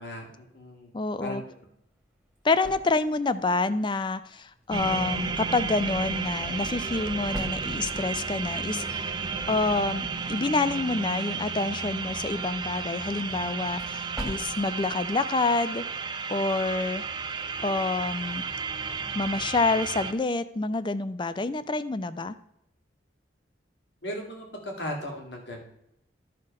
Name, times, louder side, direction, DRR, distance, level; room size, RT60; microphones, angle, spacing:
voice 1, 0.0-0.9 1.2-1.4 24.0-25.6, equal, 70° left, 1 dB, 2.2 m, -37 dB
voice 2, 0.9-1.4 2.4-9.1 9.5-15.8 16.3-17.0 17.6-18.4 19.1-22.3, left 3 dB, 25° left, 14 dB, 0.4 m, -27 dB
sound 1, 1.7-16.2, equal, 5° right, 1.5 m, -47 dB
sound 2, 4.7-20.1, right 5 dB, 25° right, 0.5 m, -33 dB
12.5 x 4.3 x 5.3 m, 0.77 s
head